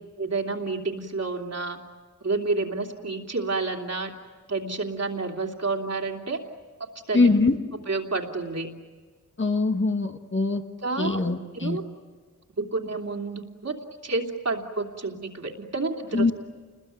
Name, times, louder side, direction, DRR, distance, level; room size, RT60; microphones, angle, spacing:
voice 1, 0.2-1.8 2.2-4.1 4.5-6.4 6.8-7.3 7.9-8.7 10.8-11.2 11.5-11.8 12.6-13.8 14.0-16.3, right 3 dB, 55° right, 2 dB, 3.0 m, -29 dB
voice 2, 7.1-7.6 9.4-10.6 11.0-11.8 16.1-16.3, left 3 dB, 40° left, 5 dB, 1.7 m, -22 dB
29.5 x 21.0 x 9.3 m, 1.4 s
wide cardioid pair, 85°, 31 cm